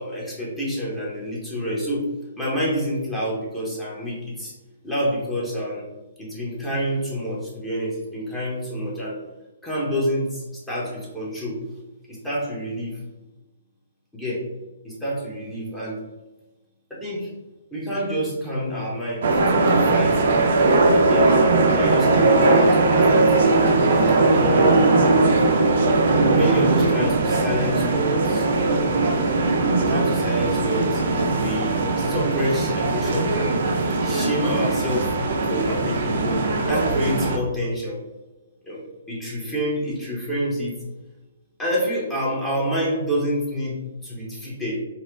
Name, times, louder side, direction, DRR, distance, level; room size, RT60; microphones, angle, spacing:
voice 1, 0.0-2.1 2.4-4.5 4.8-5.8 6.2-9.2 9.6-11.6 12.1-13.0 14.1-14.5 14.8-16.0 16.9-17.3 17.7-20.4 21.0-21.3 21.7-23.5 24.2-24.9 25.6-28.9 29.8-31.0 31.4-33.6 34.0-35.1 35.5-38.0 38.6-38.8 39.1-40.7 41.6-44.8, equal, 10° left, -7 dB, 0.9 m, -28 dB
sound 1, 19.2-37.4, right 3 dB, 60° right, 0.5 m, -19 dB
4.1 x 2.1 x 2.5 m, 1.1 s
hypercardioid pair, 140°, 0 cm